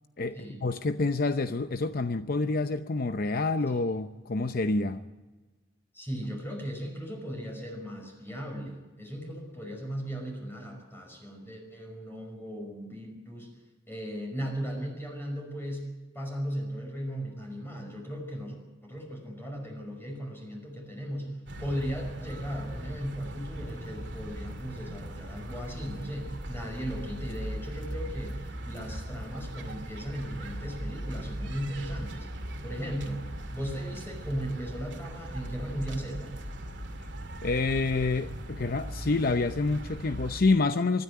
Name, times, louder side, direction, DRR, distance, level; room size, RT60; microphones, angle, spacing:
voice 1, 0.2-5.0 37.4-41.0, left 3 dB, 55° left, 0.7 m, -28 dB
voice 2, 5.9-13.5 13.9-15.8 16.1-18.6 18.8-21.3 21.6-28.3 28.7-32.3 32.6-33.2 33.5-36.4, equal, 15° left, 5.5 m, -37 dB
sound 1, 21.5-40.4, right 1 dB, 75° right, 2.5 m, -39 dB
24.5 x 13.0 x 9.8 m
head